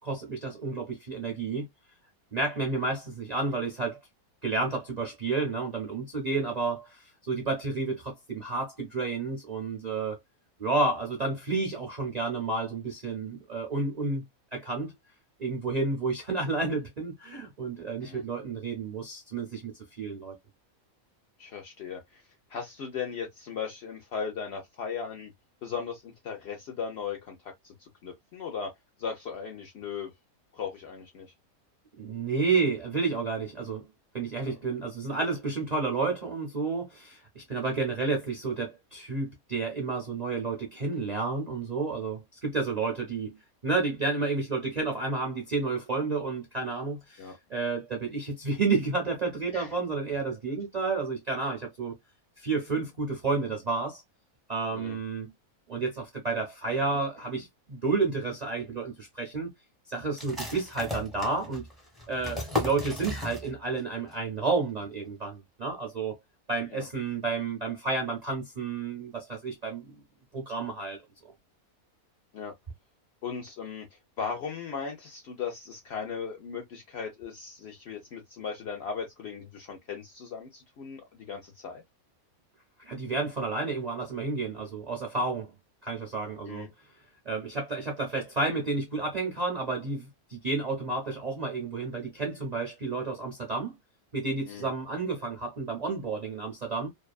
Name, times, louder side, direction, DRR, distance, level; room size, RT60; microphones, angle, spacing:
voice 1, 0.0-1.7 2.3-4.0 4.4-10.2 10.6-14.2 14.5-14.9 15.4-20.3 32.0-33.8 34.1-43.4 43.6-51.9 52.4-54.0 54.5-55.3 55.7-59.5 59.9-61.7 62.1-66.1 66.5-69.9 70.3-71.0 82.8-85.5 85.8-86.7 87.3-93.7 94.1-96.9, right 3 dB, 45° right, 0.5 m, -31 dB
voice 2, 21.4-22.2 22.5-25.3 25.6-28.7 29.0-30.1 30.5-31.3 34.4-34.6 47.2-47.4 49.5-49.7 54.7-55.0 66.7-66.9 72.3-72.5 73.2-73.9 74.2-81.8 86.5-86.7 94.5-94.7, left 6 dB, 65° left, 0.6 m, -37 dB
sound 1, 60.2-63.8 64.1-64.2 64.6-65.1, left 2 dB, ahead, 0.6 m, -35 dB
2.6 x 2.4 x 2.2 m
omnidirectional pair, 1.5 m